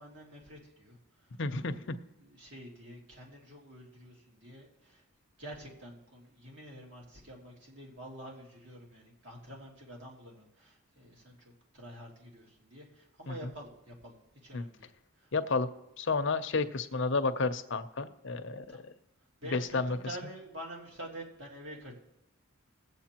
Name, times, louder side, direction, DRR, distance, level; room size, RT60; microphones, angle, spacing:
voice 1, 0.0-1.4 1.6-1.9 2.2-5.0 5.4-14.1 14.4-15.3 18.7-18.8 19.4-21.9, right 1 dB, 55° right, -2 dB, 2.4 m, -48 dB
voice 2, 1.4-2.0 14.5-14.6 15.3-15.7 16.0-18.9 19.5-20.0, left 3 dB, 55° left, 9 dB, 0.6 m, -31 dB
19.5 x 8.0 x 2.9 m, 0.88 s
head